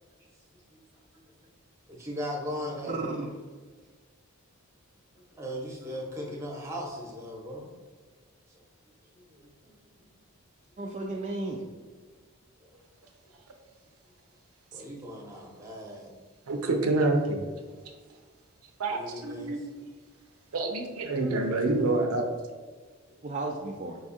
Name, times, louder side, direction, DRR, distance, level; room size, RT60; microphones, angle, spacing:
voice 1, 1.9-3.3 5.1-7.7 8.5-8.6 9.1-10.1 12.6-12.7 14.7-16.1 18.9-19.6 23.1-23.2, equal, 15° right, -2 dB, 0.9 m, -38 dB
voice 2, 2.9-3.3 10.8-11.6 23.2-24.0, right 2 dB, 30° right, -1 dB, 0.3 m, -34 dB
voice 3, 16.5-17.4 18.8-19.6 20.5-22.3, right 2 dB, 85° right, 4 dB, 0.6 m, -27 dB
5.3 x 2.4 x 4.2 m, 1.4 s
head